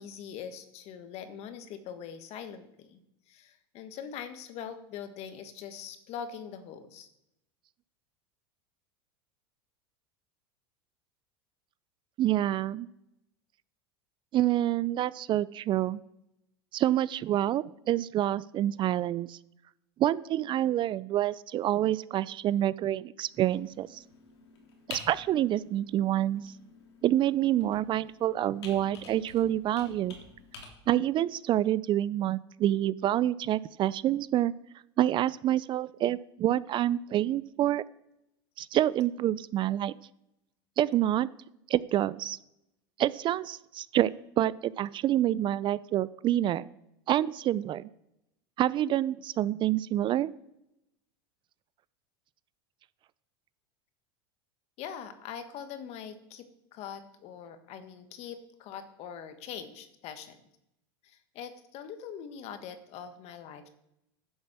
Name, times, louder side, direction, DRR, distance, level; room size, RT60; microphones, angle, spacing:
voice 1, 0.0-3.0 3.3-7.1 54.8-60.4 61.0-63.7, left 8 dB, 50° left, 9 dB, 1.5 m, -43 dB
voice 2, 12.2-12.9 14.3-16.0 16.7-19.4 20.0-24.0 24.9-26.5 27.0-30.1 30.9-34.5 35.0-37.8 38.6-39.9 40.8-41.3 41.7-42.4 43.0-46.7 47.1-47.8 48.6-50.3, right 12 dB, 35° right, 19 dB, 0.4 m, -27 dB
Computer keyboard, 23.3-30.7, left 4 dB, 90° left, 3.2 m, -49 dB
10.5 x 7.3 x 6.0 m, 0.84 s
hypercardioid pair, 100°, 14 cm